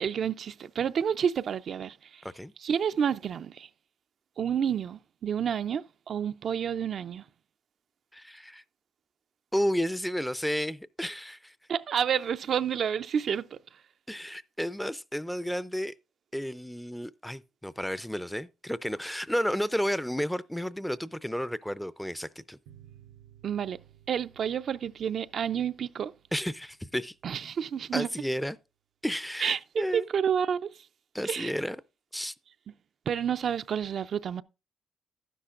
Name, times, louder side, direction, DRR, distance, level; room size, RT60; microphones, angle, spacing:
voice 1, 0.0-2.2 2.6-3.7 4.4-7.2 11.7-13.6 23.4-23.8 24.1-26.1 27.2-28.1 29.4-30.8 31.2-31.5 33.1-34.4, right 8 dB, 60° right, 0.4 m, -29 dB
voice 2, 8.1-8.6 9.5-11.5 14.1-15.9 16.3-22.6 26.3-27.1 27.9-28.6 29.0-30.1 31.1-31.8 32.1-32.3, equal, 5° left, 0.4 m, -32 dB
sound 1, 22.7-27.8, right 11 dB, 90° right, 0.7 m, -58 dB
11.5 x 10.0 x 2.5 m
cardioid pair, 90°, 0 cm